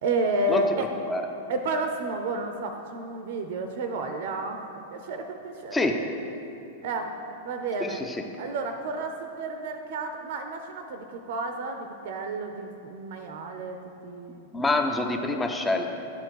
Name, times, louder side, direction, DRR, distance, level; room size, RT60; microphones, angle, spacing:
voice 1, 0.0-0.9 1.5-4.6 4.9-5.9 6.8-7.2 7.4-8.0 8.4-14.5, right 2 dB, 55° right, 6 dB, 0.6 m, -31 dB
voice 2, 7.8-8.2 14.5-15.9, left 2 dB, 10° left, 4 dB, 0.7 m, -26 dB
9.9 x 4.4 x 6.3 m, 2.8 s
figure-of-eight pair, 95°, 0 cm